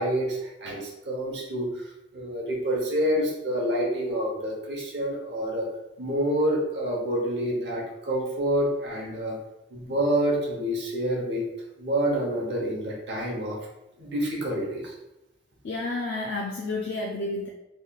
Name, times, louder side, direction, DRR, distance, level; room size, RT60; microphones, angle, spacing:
voice 1, 0.0-1.9 2.1-5.7 6.0-9.3 9.7-11.5 11.8-13.6 14.0-14.9, right 1 dB, 55° right, -3 dB, 0.8 m, -27 dB
voice 2, 15.6-17.5, left 2 dB, 60° left, 0 dB, 0.3 m, -30 dB
3.6 x 3.0 x 2.3 m, 0.93 s
head